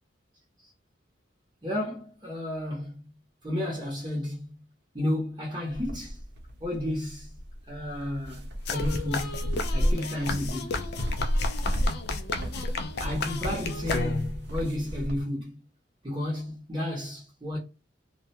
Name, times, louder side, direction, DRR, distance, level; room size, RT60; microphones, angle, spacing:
voice 1, 1.6-3.0 3.4-4.6 4.9-6.2 6.6-7.3 7.7-9.4 9.7-10.8 13.0-15.6 16.0-17.6, left 1 dB, 25° right, 0.7 m, -32 dB
sound 1, 5.7-15.2, equal, 60° right, 0.7 m, -32 dB
sound 2, 8.7-14.5, left 3 dB, 55° left, 0.4 m, -33 dB
2.3 x 2.1 x 2.7 m
head